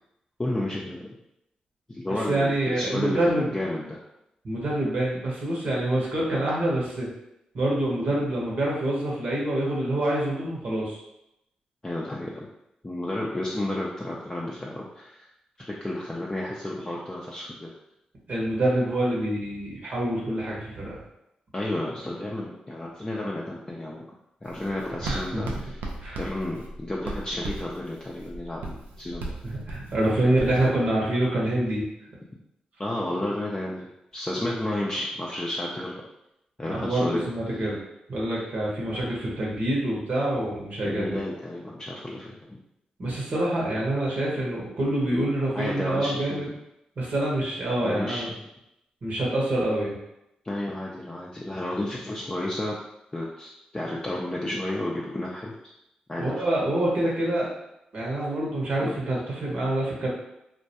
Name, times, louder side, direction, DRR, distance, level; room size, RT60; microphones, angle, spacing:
voice 1, 0.4-1.2 1.9-4.0 11.8-12.5 12.8-15.3 15.6-17.7 21.5-24.1 24.4-25.8 26.2-29.3 30.2-30.3 32.8-36.0 36.6-37.3 40.8-42.6 45.5-46.4 47.8-48.5 50.4-52.8 53.1-55.7 56.1-56.4 58.8-59.0, left 1 dB, 20° left, -4 dB, 0.4 m, -32 dB
voice 2, 2.3-3.5 4.4-7.1 7.5-11.0 18.3-21.0 25.0-25.6 26.0-26.2 29.4-31.9 36.7-37.8 38.1-41.2 43.0-46.5 47.0-48.3 49.0-50.0 56.2-57.5 57.9-60.1, right 1 dB, 60° right, -4 dB, 0.8 m, -26 dB
Writing, 24.4-30.7, right 2 dB, 80° right, 0.4 m, -37 dB
2.2 x 2.1 x 2.7 m, 0.83 s
supercardioid pair, 40°, 3 cm